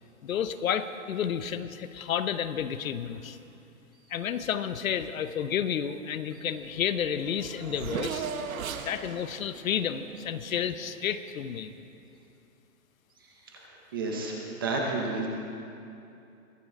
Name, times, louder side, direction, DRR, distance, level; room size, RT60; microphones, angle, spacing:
voice 1, 0.2-3.4 4.1-8.3 8.8-11.7, left 8 dB, 70° left, 11 dB, 0.8 m, -31 dB
Race car auto racing / Accelerating revving vroom, 6.6-6.7 6.9-10.9, right 6 dB, 70° right, 1.1 m, -38 dB
voice 2, 13.9-15.3, right 3 dB, 15° right, 0 dB, 0.6 m, -31 dB
22.5 x 8.6 x 3.7 m, 2.7 s
hypercardioid pair, 170°, 42 cm